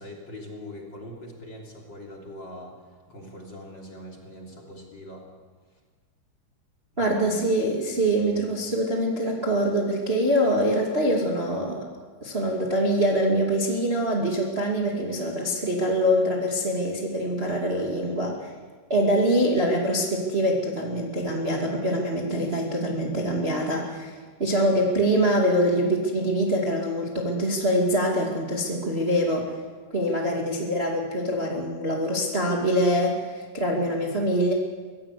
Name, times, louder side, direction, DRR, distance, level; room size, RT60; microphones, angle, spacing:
voice 1, 0.0-2.8 3.1-5.3 5.7-5.8 6.9-7.6 8.3-8.6, equal, 25° left, -1 dB, 3.2 m, -42 dB
voice 2, 7.0-11.9 12.2-18.5 18.9-29.5 29.9-34.5, equal, 35° right, -1 dB, 0.9 m, -24 dB
24.0 x 17.0 x 8.4 m, 1.5 s
omnidirectional pair, 5.5 m